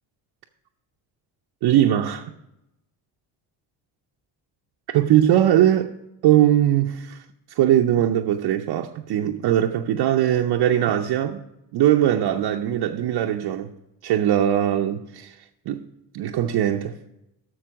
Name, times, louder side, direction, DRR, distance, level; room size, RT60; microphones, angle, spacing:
voice 1, 1.6-2.3 4.9-5.9 6.2-7.2 7.5-11.4 11.7-13.7 14.0-15.4 15.7-15.8 16.1-17.0, right 11 dB, 55° right, 0.7 m, -20 dB
7.7 x 6.3 x 6.2 m
supercardioid pair, 75°, 48 cm